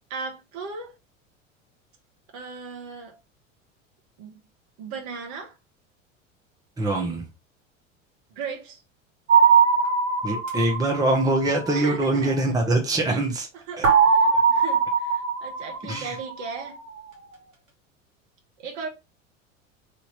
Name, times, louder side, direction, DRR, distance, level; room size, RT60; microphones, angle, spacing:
voice 1, 0.1-0.9 2.3-3.2 4.2-4.4 4.8-5.5 8.3-8.8 11.7-12.3 13.1-13.2 13.7-16.8 18.6-18.9, right 4 dB, 45° right, 1.3 m, -36 dB
voice 2, 6.8-7.3 10.2-13.5 13.8-13.9 15.9-16.2, right 2 dB, 10° right, 1.0 m, -23 dB
sound 1, 9.3-12.2 13.8-16.7, right 6 dB, 80° right, 1.4 m, -21 dB
3.4 x 2.8 x 4.2 m
figure-of-eight pair, 75°, 39 cm